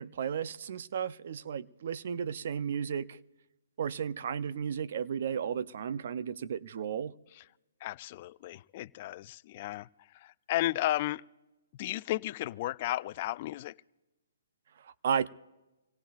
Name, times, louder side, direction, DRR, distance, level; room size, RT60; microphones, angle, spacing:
voice 1, 0.0-3.2 3.8-7.1 15.0-15.3, right 7 dB, 55° right, 0.6 m, -33 dB
voice 2, 7.8-9.9 10.1-11.2 11.8-13.8, left 15 dB, 40° left, 0.4 m, -34 dB
26.0 x 17.5 x 2.5 m
hypercardioid pair, 135°, 0 cm